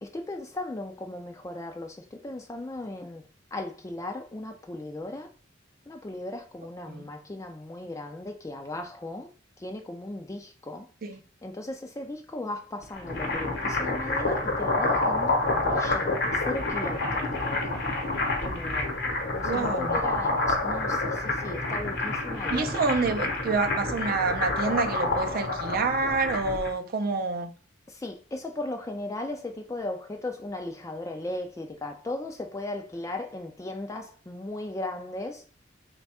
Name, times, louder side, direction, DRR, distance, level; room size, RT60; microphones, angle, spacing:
voice 1, 0.0-3.2 3.5-5.3 5.9-9.3 9.6-10.9 11.4-17.8 18.4-19.0 19.3-22.9 27.9-35.4, left 2 dB, 15° left, 0.3 m, -37 dB
sound 1, 12.8-26.7, left 2 dB, 60° left, 0.9 m, -28 dB
voice 2, 19.4-20.0 22.5-27.5, right 4 dB, 50° right, 0.4 m, -28 dB
3.3 x 2.3 x 4.1 m
head